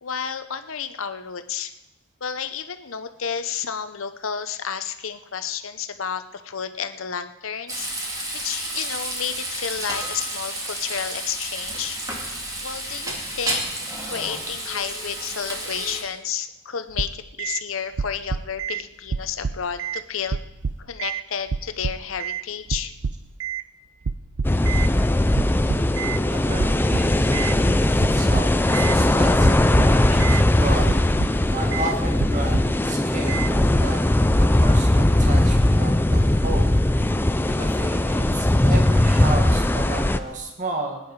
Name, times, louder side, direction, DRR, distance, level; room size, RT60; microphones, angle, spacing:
voice 1, 0.0-1.7 2.2-7.9 8.3-12.0 12.3-12.4 12.6-13.7 14.0-20.4 20.8-22.9, left 7 dB, 70° left, 10 dB, 0.8 m, -31 dB
Frying (food), 7.7-16.0, right 1 dB, 15° right, 2.2 m, -31 dB
sound 1, 16.9-17.6 18.0-18.8 19.1-20.0 20.3-21.2 21.5-22.4 22.7-23.6 24.0-24.9 25.4-26.2 26.6-27.6 28.0-29.0 29.4-30.4 30.8-31.5 31.7-31.9 32.2-32.8 33.3-33.5, right 5 dB, 70° right, 0.6 m, -28 dB
sound 2, 24.4-40.2, left 1 dB, 10° left, 0.4 m, -19 dB
voice 2, 24.9-30.9 31.5-34.0 34.4-36.7 37.5-41.0, right 2 dB, 40° right, 1 dB, 1.9 m, -33 dB
19.0 x 10.0 x 4.8 m, 0.95 s
head